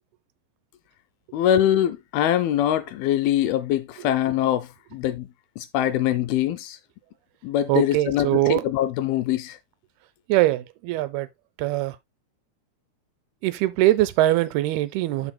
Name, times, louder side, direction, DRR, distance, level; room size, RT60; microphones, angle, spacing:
voice 1, 1.3-5.3 5.6-6.8 7.4-9.6, left 11 dB, 80° left, 2.4 m, -23 dB
voice 2, 7.7-8.6 10.3-11.3 11.6-12.0 13.4-15.3, right 15 dB, 85° right, 2.5 m, -22 dB
13.0 x 4.7 x 2.2 m
omnidirectional pair, 4.6 m